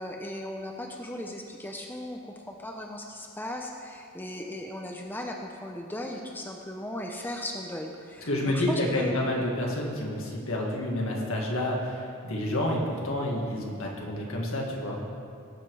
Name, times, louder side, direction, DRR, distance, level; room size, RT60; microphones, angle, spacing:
voice 1, 0.0-2.2 2.5-9.2, left 1 dB, 10° left, 1 dB, 0.7 m, -37 dB
voice 2, 8.2-15.0, left 1 dB, 65° left, -1 dB, 2.1 m, -29 dB
17.5 x 7.4 x 4.8 m, 2.4 s
head